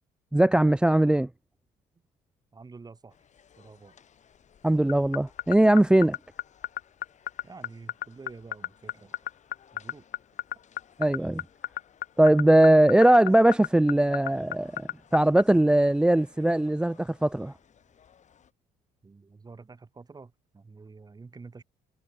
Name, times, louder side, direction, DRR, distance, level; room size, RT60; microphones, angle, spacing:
voice 1, 0.3-1.3 4.6-6.2 11.0-11.4 12.2-17.5, right 1 dB, 5° right, 0.4 m, -20 dB
voice 2, 2.5-3.2 3.6-4.0 7.4-9.2 9.7-10.0 19.0-21.6, right 4 dB, 25° right, 7.1 m, -48 dB
sound 1, 3.1-18.5, left 8 dB, 45° left, 5.4 m, -60 dB
sound 2, 4.9-15.4, left 15 dB, 65° left, 0.6 m, -31 dB
cardioid pair, 110°, 17 cm